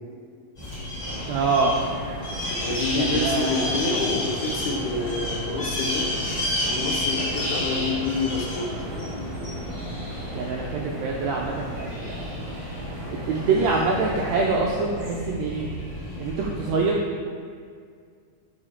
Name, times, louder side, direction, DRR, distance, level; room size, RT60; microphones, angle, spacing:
sound 1, 0.6-16.8, left 1 dB, 40° left, 0.8 m, -31 dB
sound 2, 1.0-14.6, right 1 dB, 55° right, 1.9 m, -38 dB
voice 1, 1.3-1.8 2.9-3.7 10.3-12.3 13.1-15.7 16.2-17.0, right 4 dB, 85° right, -1 dB, 1.5 m, -25 dB
voice 2, 2.5-6.1 6.6-8.7, left 3 dB, 80° left, 0 dB, 2.1 m, -28 dB
4.9 x 4.9 x 4.3 m, 2.1 s
omnidirectional pair, 3.6 m